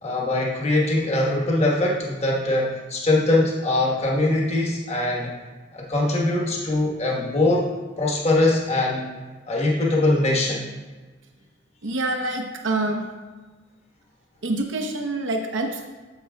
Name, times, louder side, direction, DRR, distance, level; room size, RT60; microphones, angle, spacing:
voice 1, 0.0-5.3 5.7-7.7 8.0-9.1 9.5-10.6, left 2 dB, 35° left, -2 dB, 1.3 m, -22 dB
voice 2, 11.8-13.0 14.4-15.9, right 2 dB, 85° right, 3 dB, 0.8 m, -26 dB
7.9 x 7.6 x 2.3 m, 1.3 s
head